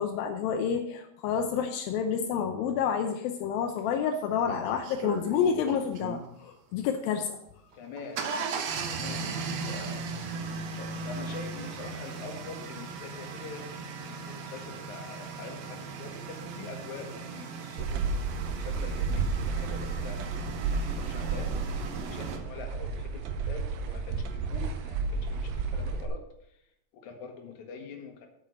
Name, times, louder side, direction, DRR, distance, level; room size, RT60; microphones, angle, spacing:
voice 1, 0.0-7.4, left 7 dB, 85° left, 5 dB, 2.5 m, -29 dB
sound 1, 3.8-3.9 4.5-6.3 7.7-22.4, right 4 dB, 65° right, 1.7 m, -37 dB
voice 2, 7.7-8.3 8.8-10.1 10.8-18.0 18.5-20.3 20.7-21.5 21.9-26.6 26.9-28.3, left 5 dB, 60° left, 2 dB, 2.8 m, -44 dB
sound 2, 17.8-26.1, right 4 dB, 85° right, 2.6 m, -32 dB
8.5 x 8.2 x 6.3 m, 0.80 s
omnidirectional pair, 4.1 m